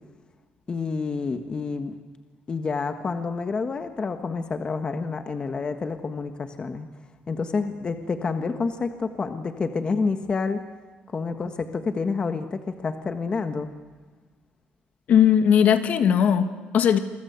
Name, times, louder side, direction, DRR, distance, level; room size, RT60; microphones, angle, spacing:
voice 1, 0.7-1.9 2.5-6.9 7.3-10.6 11.1-13.7, left 4 dB, 30° left, 7 dB, 1.4 m, -28 dB
voice 2, 15.1-17.0, left 8 dB, 55° left, 8 dB, 2.0 m, -19 dB
29.0 x 24.5 x 8.1 m, 1.4 s
cardioid pair, 145°, 3 cm